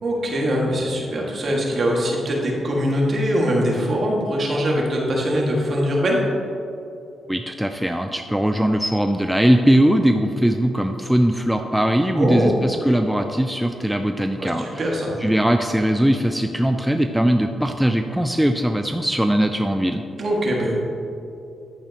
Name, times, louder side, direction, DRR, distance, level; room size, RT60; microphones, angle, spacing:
voice 1, 0.0-6.2 12.1-12.6 14.4-15.1 20.2-20.8, equal, 50° right, -3 dB, 2.1 m, -22 dB
voice 2, 7.3-14.9 15.2-20.0, right 1 dB, 5° right, 5 dB, 0.4 m, -20 dB
10.0 x 8.5 x 3.0 m, 2.8 s
cardioid pair, 80°, 0 cm